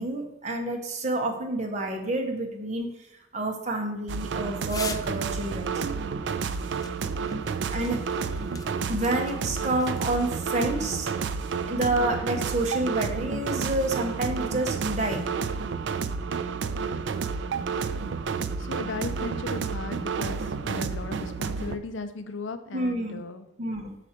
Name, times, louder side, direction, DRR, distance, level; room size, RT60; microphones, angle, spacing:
voice 1, 0.0-2.9 3.3-5.8 7.7-8.0 8.9-11.1 11.6-15.3 22.7-23.2 23.6-24.0, right 2 dB, 35° right, 3 dB, 1.0 m, -29 dB
sound 1, 4.1-21.8, right 5 dB, 65° right, 0.4 m, -30 dB
sound 2, 4.7-5.2 6.3-10.1, left 5 dB, 20° left, 0.4 m, -42 dB
voice 2, 18.6-23.5, left 3 dB, 75° left, 10 dB, 0.6 m, -37 dB
6.0 x 5.0 x 4.3 m, 0.86 s
head